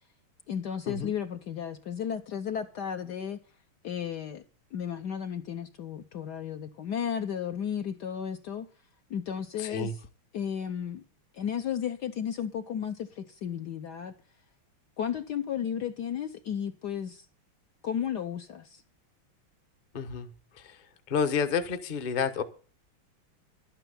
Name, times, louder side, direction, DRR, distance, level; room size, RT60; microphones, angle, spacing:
voice 1, 0.5-3.4 3.8-4.4 4.7-8.7 9.1-10.0 10.3-11.0 11.3-14.1 15.0-17.3 17.8-18.8, left 8 dB, 65° left, 1.1 m, -34 dB
voice 2, 9.6-9.9 19.9-20.3 21.1-22.4, left 6 dB, 35° left, 0.7 m, -29 dB
12.0 x 9.1 x 7.0 m
omnidirectional pair, 2.4 m